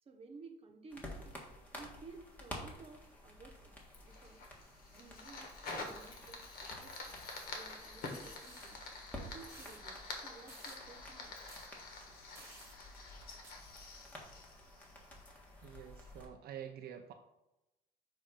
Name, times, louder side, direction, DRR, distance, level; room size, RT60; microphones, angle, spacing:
voice 1, 0.0-1.3 1.7-3.8 4.0-4.4 4.9-7.2 7.5-8.8 9.2-11.3, right 4 dB, 35° right, 3 dB, 1.0 m, -55 dB
sound 1, 0.9-16.3, left 1 dB, 10° left, 1.5 m, -52 dB
Fire, 3.9-15.3, left 3 dB, 60° left, 1.4 m, -48 dB
sound 2, 8.0-8.8 9.5-9.8 10.5-10.8 11.5-11.7 12.3-12.8 13.4-13.5, right 2 dB, 15° right, 1.4 m, -56 dB
voice 2, 15.6-17.1, right 9 dB, 70° right, 5 dB, 0.5 m, -48 dB
7.2 x 2.6 x 5.0 m, 0.93 s
cardioid pair, 110°, 17 cm